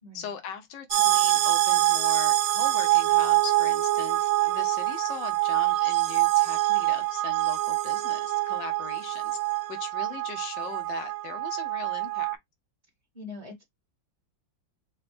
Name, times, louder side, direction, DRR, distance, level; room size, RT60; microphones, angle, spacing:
voice 1, 0.1-9.4 9.7-12.4, left 7 dB, 70° left, 1.5 m, -40 dB
sound 1, 0.9-12.4, right 17 dB, 85° right, 0.7 m, -25 dB
voice 2, 13.1-13.7, left 3 dB, 25° right, 2.0 m, -42 dB
3.9 x 3.1 x 3.3 m
omnidirectional pair, 2.0 m